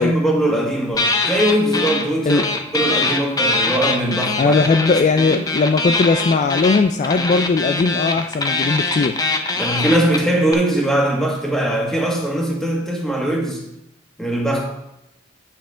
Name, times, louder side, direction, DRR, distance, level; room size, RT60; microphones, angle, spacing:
voice 1, 0.0-2.4 2.7-4.5 5.3-5.4 9.5-13.6 14.2-14.7, right 1 dB, 5° left, -2 dB, 1.7 m, -20 dB
sound 1, 0.9-2.0 2.3-10.5, left 3 dB, 20° left, 0.7 m, -22 dB
voice 2, 4.4-9.2, left 4 dB, 40° left, 7 dB, 0.3 m, -18 dB
8.3 x 7.3 x 3.8 m, 0.87 s
head